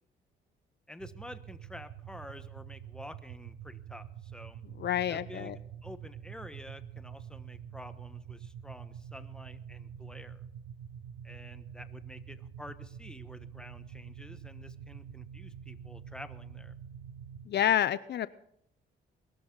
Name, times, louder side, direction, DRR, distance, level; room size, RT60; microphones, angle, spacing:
voice 1, 0.9-4.6 5.1-5.5 5.8-10.4 11.2-16.7, left 1 dB, 5° left, 10 dB, 1.2 m, -49 dB
sound 1, 1.0-17.5, right 8 dB, 80° right, 1.8 m, -46 dB
voice 2, 4.8-5.6 17.5-18.3, left 11 dB, 60° left, 16 dB, 0.5 m, -28 dB
21.5 x 13.0 x 3.9 m, 0.73 s
cardioid pair, 90°, 20 cm